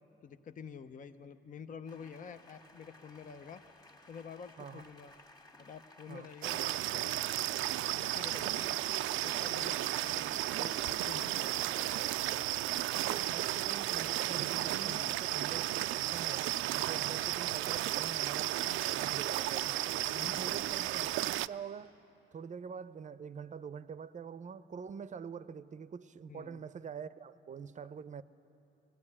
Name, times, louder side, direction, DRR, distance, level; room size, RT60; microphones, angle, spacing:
voice 1, 0.2-3.6 4.1-5.1 5.6-7.2 7.9-8.8 9.2-11.8 14.9-15.2 20.1-20.6 26.3-26.6, left 6 dB, 40° left, 0.7 m, -49 dB
sound 1, 1.9-12.6 14.5-14.6 14.9-15.2 19.2-19.5, left 2 dB, 20° left, 1.9 m, -60 dB
sound 2, 6.4-21.5, right 15 dB, 85° right, 0.4 m, -34 dB
voice 2, 13.1-15.7 16.0-16.5 16.8-22.0 22.3-28.2, right 6 dB, 40° right, 0.6 m, -45 dB
19.5 x 16.5 x 9.9 m
cardioid pair, 90°, 20 cm